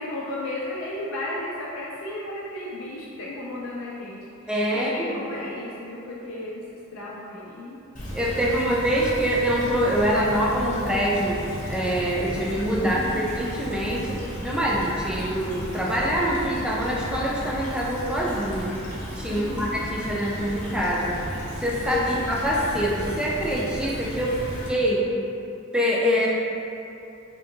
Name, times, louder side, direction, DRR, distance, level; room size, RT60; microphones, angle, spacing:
voice 1, 0.0-7.8 8.4-8.7 12.7-13.3 19.3-19.8 22.0-22.1 24.3-24.4, left 1 dB, 75° left, -5 dB, 0.4 m, -35 dB
voice 2, 4.5-5.1 8.1-11.4 11.7-18.7 19.2-21.2 21.6-24.3 24.7-25.0 25.7-26.3, equal, 5° right, -5 dB, 0.4 m, -25 dB
Stream / Trickle dribble, 8.0-24.7, equal, 40° left, 0.7 m, -34 dB
3.6 x 2.5 x 2.6 m, 2.8 s
head